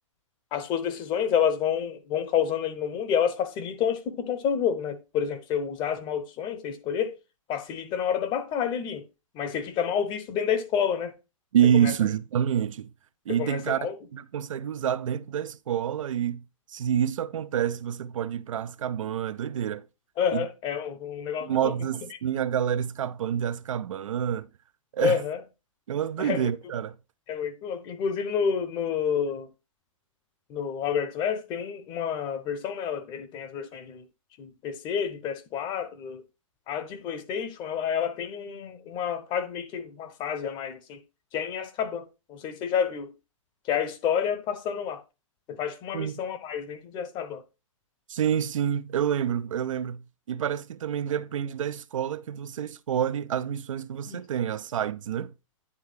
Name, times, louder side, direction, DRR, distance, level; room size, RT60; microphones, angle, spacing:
voice 1, 0.5-7.2 7.5-9.0 9.3-11.1 11.7-11.9 13.3-13.9 20.2-21.7 25.0-25.4 26.2-26.5 27.3-29.5 30.5-34.0 34.4-36.2 36.7-41.0 41.3-43.1 43.7-45.0 45.5-47.4 54.1-54.2, left 8 dB, 25° left, 0.8 m, -29 dB
voice 2, 11.5-12.9 13.3-16.4 16.7-19.9 20.3-20.5 21.4-24.5 24.9-25.2 25.9-27.0 45.9-46.1 48.1-55.3, right 9 dB, 70° right, 0.5 m, -28 dB
9.7 x 3.5 x 3.4 m
hypercardioid pair, 130°, 17 cm